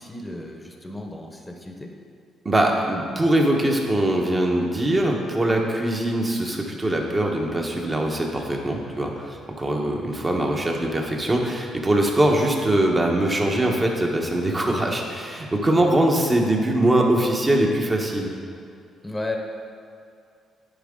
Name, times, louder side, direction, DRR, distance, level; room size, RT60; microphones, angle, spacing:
voice 1, 0.0-1.9 19.0-19.4, left 2 dB, 10° left, 2 dB, 0.9 m, -34 dB
voice 2, 2.4-18.3, right 1 dB, 25° right, 1 dB, 1.1 m, -22 dB
10.0 x 4.7 x 3.7 m, 2.5 s
cardioid pair, 90°, 0 cm